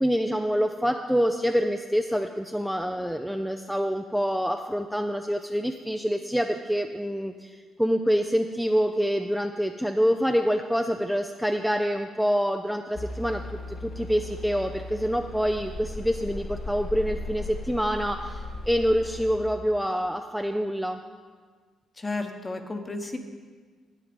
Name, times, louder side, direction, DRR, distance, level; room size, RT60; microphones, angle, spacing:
voice 1, 0.0-21.0, equal, ahead, 4 dB, 0.5 m, -26 dB
sound 1, 13.0-19.4, left 2 dB, 40° left, 0.7 m, -37 dB
voice 2, 22.0-23.2, left 2 dB, 25° left, 6 dB, 1.0 m, -32 dB
10.0 x 9.1 x 5.2 m, 1.5 s
cardioid pair, 90°, 0 cm